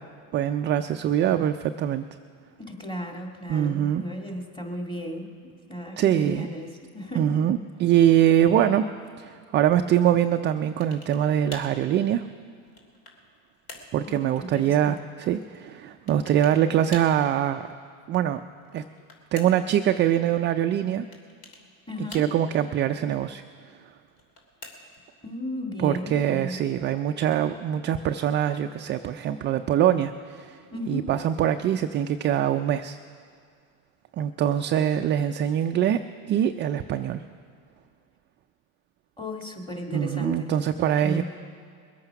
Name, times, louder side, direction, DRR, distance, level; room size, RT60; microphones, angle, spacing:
voice 1, 0.3-2.1 3.5-4.0 6.0-6.5 7.2-8.9 9.2-12.3 13.9-17.7 18.1-18.4 18.7-18.8 19.3-21.1 22.0-23.4 25.8-30.6 30.9-33.0 34.2-36.0 36.3-37.2 39.9-41.2, right 10 dB, 30° right, 7 dB, 0.4 m, -23 dB
voice 2, 2.6-7.4 14.0-14.9 21.9-22.3 25.2-26.6 30.7-31.1 39.2-40.5 41.0-41.2, left 1 dB, 10° left, 1 dB, 2.1 m, -35 dB
sound 1, 10.8-11.3 11.5-11.8 12.4-13.3 13.7-14.0 16.1-16.6 16.9-17.2 18.6-19.7 21.1-21.7 22.1-22.6 24.1-25.1, left 2 dB, 60° left, 2.6 m, -45 dB
21.5 x 8.7 x 5.8 m, 2.1 s
supercardioid pair, 110°, 41 cm